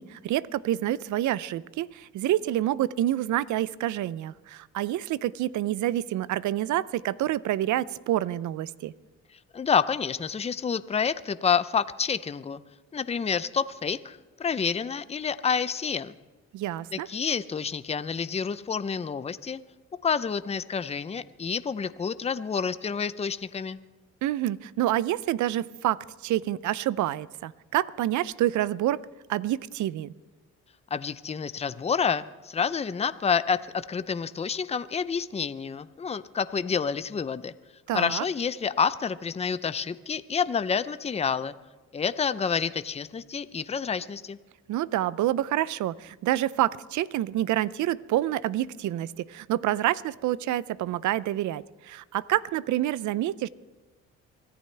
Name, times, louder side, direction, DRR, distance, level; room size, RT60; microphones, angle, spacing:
voice 1, 0.0-8.9 16.5-17.1 24.2-29.0 29.3-30.1 37.9-38.2 44.7-53.5, right 13 dB, 75° right, 19 dB, 0.5 m, -28 dB
voice 2, 9.5-12.6 12.9-16.1 16.9-19.6 20.0-23.8 30.9-37.5 37.9-41.5 41.9-44.4, left 6 dB, 20° left, 14 dB, 0.6 m, -28 dB
24.5 x 14.0 x 3.4 m, 1.2 s
cardioid pair, 90°, 30 cm